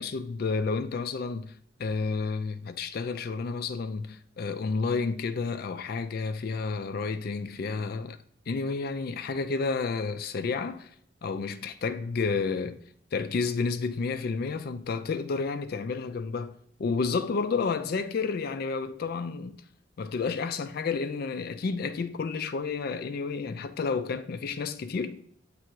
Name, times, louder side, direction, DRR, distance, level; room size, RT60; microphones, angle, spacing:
voice 1, 0.0-8.2 8.5-10.9 11.2-12.8 13.1-19.6 20.0-25.2, left 4 dB, 50° left, 0.4 m, -31 dB
7.4 x 3.4 x 4.5 m
head